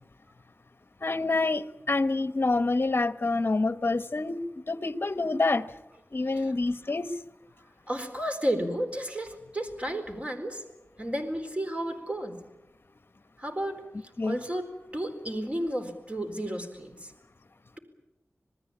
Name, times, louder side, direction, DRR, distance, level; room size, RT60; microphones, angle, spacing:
voice 1, 1.0-5.7 6.1-7.1 14.2-14.4, left 3 dB, 50° left, 12 dB, 1.1 m, -27 dB
voice 2, 7.9-10.6 11.0-12.4 13.4-14.6 14.9-17.1, right 1 dB, 25° right, 6 dB, 4.2 m, -32 dB
27.0 x 19.5 x 8.7 m, 0.94 s
wide cardioid pair, 80°, 5 cm